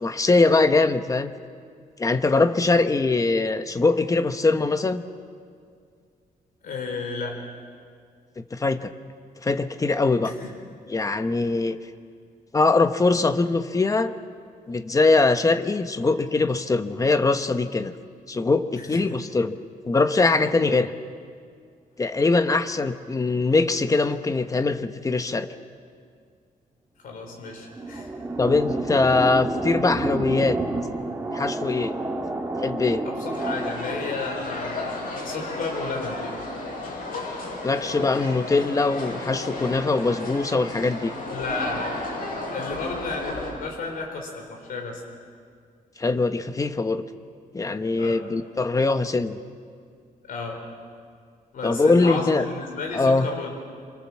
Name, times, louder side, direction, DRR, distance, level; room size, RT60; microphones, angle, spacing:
voice 1, 0.0-1.3 2.0-5.0 8.4-8.9 9.4-10.3 10.9-11.8 12.5-14.1 14.7-17.9 18.3-19.6 19.8-20.9 22.0-25.5 28.4-30.6 31.3-31.9 32.6-33.0 37.6-41.1 46.0-47.0 47.5-49.4 51.6-52.5 52.9-53.3, left 3 dB, 20° left, 9 dB, 1.0 m, -22 dB
voice 2, 6.6-7.4 10.2-10.5 18.8-19.1 27.0-28.1 33.0-36.3 41.3-42.0 42.5-45.0 48.0-48.2 50.2-50.6 51.5-53.5, left 3 dB, 70° left, 1 dB, 4.3 m, -33 dB
sound 1, 27.3-35.8, right 2 dB, 15° right, 2.8 m, -30 dB
sound 2, 33.3-43.5, left 2 dB, 90° left, 7.8 m, -33 dB
27.0 x 25.0 x 7.3 m, 2.2 s
cardioid pair, 140°, 15 cm